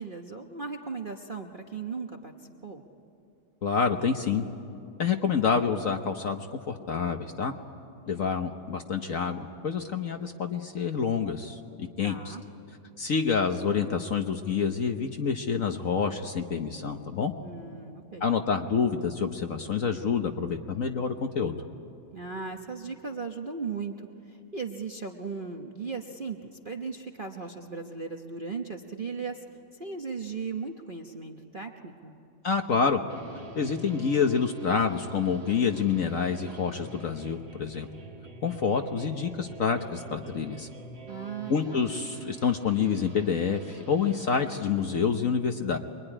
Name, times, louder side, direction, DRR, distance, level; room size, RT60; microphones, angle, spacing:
voice 1, 0.0-2.3 2.6-2.8 12.0-12.4 17.4-18.3 22.1-29.4 29.7-32.1 41.1-41.8, right 4 dB, 35° right, 2 dB, 0.9 m, -37 dB
voice 2, 3.6-4.4 5.0-7.5 8.1-12.3 13.0-17.3 18.2-21.6 32.4-33.0 33.6-37.9 38.4-40.7 41.5-45.8, left 6 dB, 50° left, 5 dB, 1.1 m, -27 dB
sound 1, 33.1-45.0, right 3 dB, 80° right, 2.9 m, -46 dB
25.5 x 22.5 x 10.0 m, 2.7 s
omnidirectional pair, 2.1 m